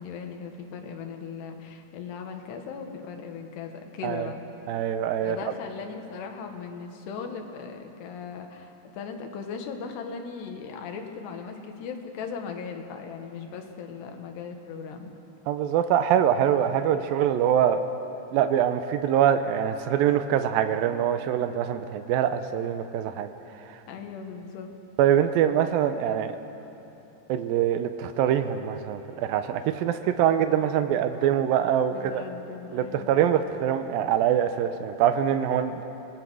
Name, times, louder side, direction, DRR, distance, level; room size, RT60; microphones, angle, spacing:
voice 1, 0.0-4.4 5.2-15.1 23.9-24.8 31.9-33.1, left 6 dB, 75° left, 4 dB, 3.5 m, -38 dB
voice 2, 4.7-5.4 15.5-17.8 18.3-23.3 25.0-26.4 27.3-32.1 32.7-35.8, right 9 dB, 90° right, 9 dB, 2.1 m, -24 dB
26.5 x 19.0 x 6.3 m, 2.9 s
omnidirectional pair, 5.0 m